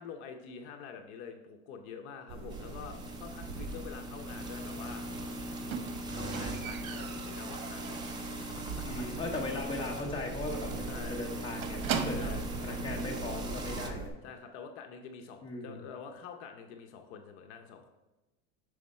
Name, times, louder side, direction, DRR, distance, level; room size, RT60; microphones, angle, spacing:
voice 1, 0.0-5.0 6.1-9.2 10.8-11.2 12.1-12.5 14.2-17.9, left 6 dB, 55° left, 5 dB, 0.7 m, -47 dB
sound 1, 2.3-14.1, right 3 dB, 60° right, 1.8 m, -43 dB
sound 2, 2.5-13.9, right 1 dB, 10° right, 0.5 m, -40 dB
Squeak, 5.7-8.5 8.8-9.2 9.5-9.6 10.0-10.1 10.3-10.5 10.7-12.5 13.4-13.5, right 7 dB, 80° right, 0.9 m, -39 dB
voice 2, 8.8-12.3 12.6-14.2 15.4-15.8, left 2 dB, 10° left, -1 dB, 0.9 m, -38 dB
6.3 x 4.9 x 4.2 m, 1.1 s
supercardioid pair, 145°, 40 cm